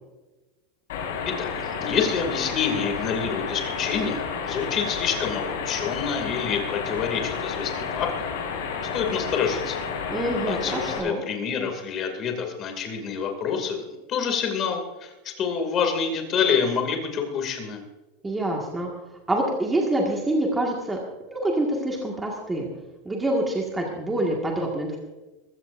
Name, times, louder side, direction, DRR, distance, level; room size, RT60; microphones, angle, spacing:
sound 1, 0.9-11.0, left 6 dB, 80° left, 5.2 m, -31 dB
voice 1, 1.3-8.1 8.9-9.8 10.5-17.8, left 6 dB, 30° left, 4 dB, 2.5 m, -27 dB
voice 2, 10.1-11.2 18.2-18.9 19.3-21.0 21.3-22.7 23.1-25.0, right 1 dB, 10° right, -1 dB, 1.9 m, -26 dB
21.0 x 15.5 x 2.6 m, 1.1 s
supercardioid pair, 170°, 0 cm